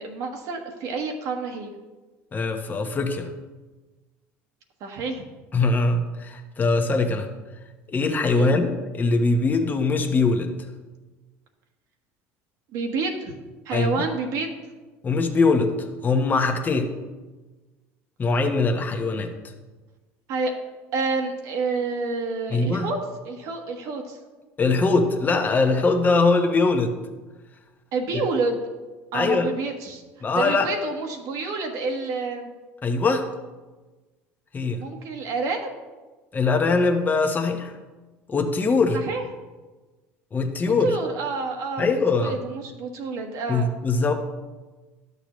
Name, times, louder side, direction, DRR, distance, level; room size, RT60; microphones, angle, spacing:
voice 1, 0.0-1.7 4.8-5.2 8.3-8.6 12.7-13.3 13.6-14.5 20.3-20.5 20.9-23.0 23.2-24.2 27.9-28.6 29.1-30.0 30.3-32.5 34.8-35.8 39.0-39.2 40.8-41.9 42.2-43.7, right 4 dB, 65° right, 3 dB, 1.3 m, -28 dB
voice 2, 2.3-3.3 5.5-7.3 7.9-10.5 13.7-14.0 15.0-15.7 16.0-16.9 18.2-19.3 22.5-22.9 24.6-26.9 29.1-29.5 30.2-30.7 32.8-33.3 34.5-34.8 36.3-37.8 38.3-39.0 40.3-41.0 41.8-42.4 43.5-44.1, left 3 dB, 25° left, 4 dB, 1.1 m, -22 dB
11.5 x 6.7 x 3.1 m, 1.2 s
supercardioid pair, 90°, 6 cm